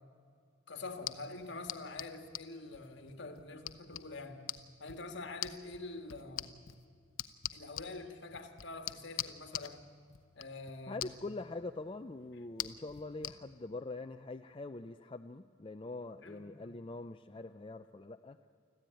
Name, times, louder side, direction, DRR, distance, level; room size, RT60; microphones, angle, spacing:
voice 1, 0.7-4.4 4.8-6.5 7.5-9.8 10.4-11.1 16.2-16.7, left 3 dB, 60° left, 7 dB, 1.8 m, -46 dB
sound 1, 0.9-13.4, left 13 dB, 80° left, 0.8 m, -46 dB
voice 2, 10.9-18.5, left 2 dB, 25° left, 7 dB, 0.5 m, -44 dB
25.5 x 14.5 x 9.1 m, 2.1 s
head